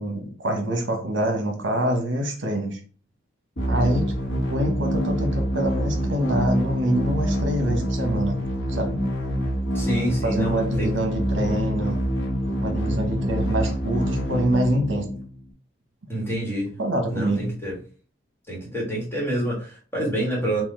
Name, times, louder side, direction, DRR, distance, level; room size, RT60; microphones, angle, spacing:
voice 1, 0.0-2.8 3.6-8.4 8.7-9.1 10.2-12.0 12.6-15.1 16.1-16.2 16.8-17.5, right 1 dB, 75° right, 0.9 m, -25 dB
sound 1, 3.6-15.5, equal, 70° left, 1.2 m, -26 dB
voice 2, 9.7-10.9 16.1-16.7 17.1-17.7 18.5-20.6, right 1 dB, 10° left, 1.3 m, -27 dB
4.2 x 2.3 x 3.7 m
head